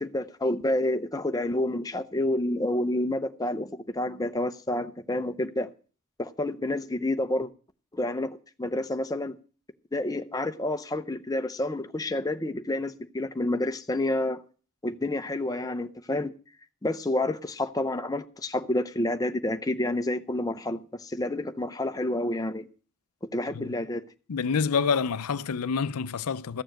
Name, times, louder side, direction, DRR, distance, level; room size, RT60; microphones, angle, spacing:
voice 1, 0.0-5.7 6.2-7.5 7.9-9.3 9.9-14.4 14.8-16.3 16.8-22.7 23.3-24.0, left 1 dB, 15° left, 0.6 m, -29 dB
voice 2, 24.3-26.6, left 5 dB, 80° left, 0.5 m, -27 dB
14.0 x 7.0 x 7.6 m
head